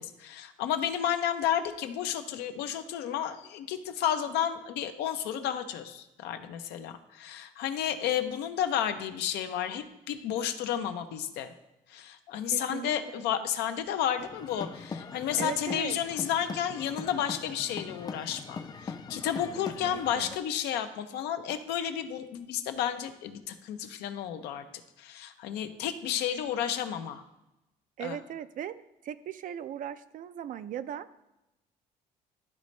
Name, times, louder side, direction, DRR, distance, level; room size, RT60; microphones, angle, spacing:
voice 1, 0.0-11.5 11.9-24.6 25.0-27.2 28.0-28.2, left 9 dB, 85° left, 8 dB, 0.6 m, -32 dB
voice 2, 12.5-13.5 15.4-16.0 19.6-20.4 28.0-28.8 29.0-31.2, right 9 dB, 55° right, 13 dB, 0.4 m, -39 dB
sound 1, 14.2-20.4, left 5 dB, 25° left, 0.4 m, -41 dB
12.0 x 4.1 x 3.2 m, 0.95 s
cardioid pair, 110°, 17 cm